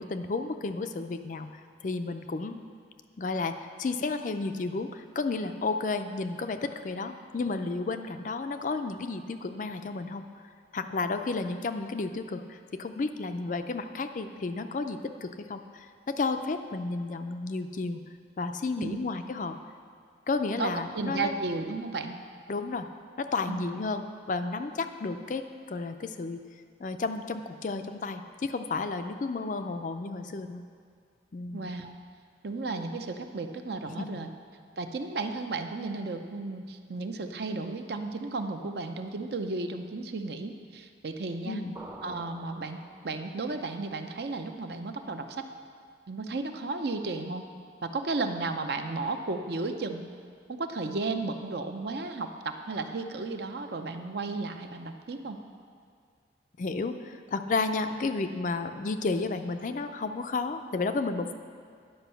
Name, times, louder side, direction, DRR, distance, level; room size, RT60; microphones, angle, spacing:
voice 1, 0.0-1.5 1.8-2.6 3.2-10.5 10.7-18.0 18.4-19.5 20.3-21.4 22.5-22.9 23.2-25.4 25.7-26.5 26.8-30.6 31.3-31.8 33.9-34.1 41.4-41.8 56.6-61.3, left 3 dB, 45° left, 8 dB, 0.4 m, -32 dB
voice 2, 20.6-22.2 23.5-23.7 31.5-32.0 32.4-34.3 34.8-41.6 42.0-42.8 43.0-45.4 46.1-47.5 47.8-50.1 50.5-55.4, right 3 dB, 60° right, 6 dB, 0.6 m, -34 dB
sound 1, 41.8-43.5, right 1 dB, 15° right, 0.6 m, -47 dB
10.0 x 5.3 x 6.8 m, 2.1 s
head